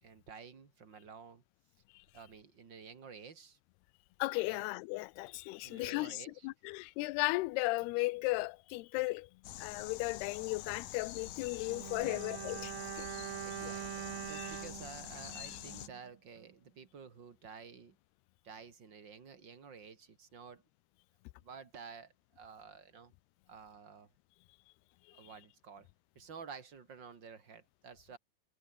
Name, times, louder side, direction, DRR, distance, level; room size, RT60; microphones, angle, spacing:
voice 1, 0.0-1.4 2.1-3.6 4.5-4.6 5.6-6.5 12.0-12.5 13.4-18.0 18.4-20.6 21.4-23.1 23.5-24.1 25.1-25.9 26.1-28.2, right 6 dB, 30° right, 2.4 m, -52 dB
voice 2, 4.2-9.3 9.6-13.1 13.6-13.7, left 23 dB, 80° left, 2.5 m, -36 dB
sound 1, 9.4-15.9, left 13 dB, 65° left, 2.9 m, -46 dB
Bowed string instrument, 11.7-16.1 16.4-16.5, right 14 dB, 70° right, 2.5 m, -44 dB
omnidirectional pair, 4.9 m